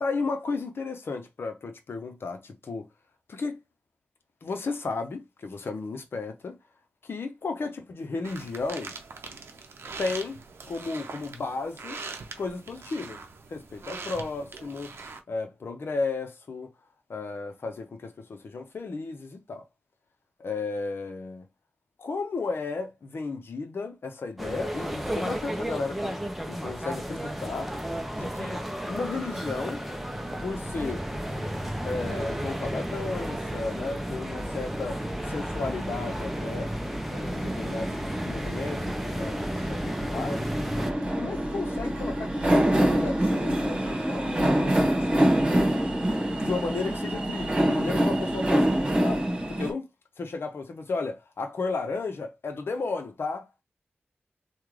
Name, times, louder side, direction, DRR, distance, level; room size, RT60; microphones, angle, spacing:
voice 1, 0.0-2.9 3.3-3.6 4.4-6.6 7.0-8.9 10.0-10.4 10.6-12.0 12.4-13.2 13.5-14.9 15.3-16.7 17.1-19.7 20.4-21.4 22.0-27.7 28.1-29.8 30.4-31.1 31.8-36.7 37.1-40.5 41.1-45.2 46.4-49.9 50.2-53.5, left 3 dB, 75° left, 0.7 m, -34 dB
sound 1, 8.2-15.2, right 4 dB, 90° right, 0.6 m, -42 dB
sound 2, 24.4-40.9, equal, ahead, 0.6 m, -34 dB
sound 3, 30.0-49.7, right 1 dB, 25° right, 1.5 m, -28 dB
3.6 x 2.3 x 3.2 m
wide cardioid pair, 100°, 4 cm